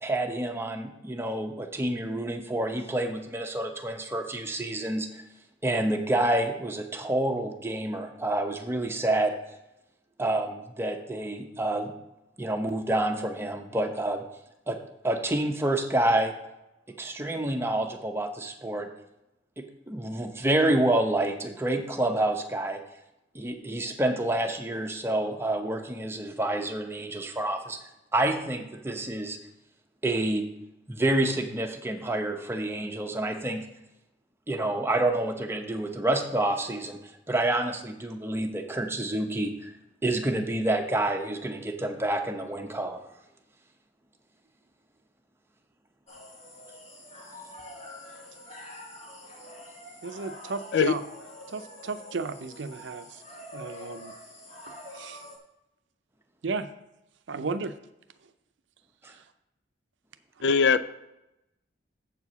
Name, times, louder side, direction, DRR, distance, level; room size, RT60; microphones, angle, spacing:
voice 1, 0.0-5.1 5.6-9.4 10.2-11.9 12.4-14.2 14.7-14.8 15.0-16.3 17.0-18.9 19.6-22.8 23.3-27.8 28.1-29.4 30.0-30.4 30.9-33.6 34.5-37.0 37.3-39.7 40.0-43.0 59.0-59.1, right 1 dB, 15° right, 4 dB, 0.8 m, -28 dB
sound 1, 46.1-55.4, left 1 dB, 35° left, 1.5 m, -46 dB
voice 2, 50.0-51.0 51.5-53.2 53.5-54.1 54.9-55.2 56.4-56.7 57.3-57.7 59.1-59.2, right 4 dB, 75° right, 10 dB, 0.6 m, -34 dB
voice 3, 60.4-60.8, left 5 dB, 65° left, 14 dB, 0.4 m, -21 dB
7.5 x 4.7 x 6.8 m, 0.90 s
head